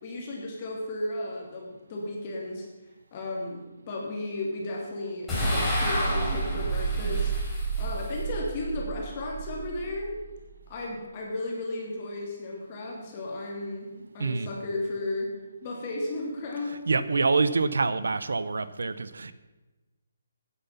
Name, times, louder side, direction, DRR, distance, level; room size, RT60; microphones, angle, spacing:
voice 1, 0.0-2.7 3.1-7.3 7.8-10.2 10.7-15.3 15.6-16.8, left 2 dB, 30° left, 2.9 m, -34 dB
sound 1, 5.3-10.6, right 2 dB, 5° left, 4.5 m, -30 dB
voice 2, 14.2-14.5 16.9-19.3, right 4 dB, 85° right, 0.9 m, -26 dB
13.0 x 9.7 x 5.8 m
hypercardioid pair, 165°, 0 cm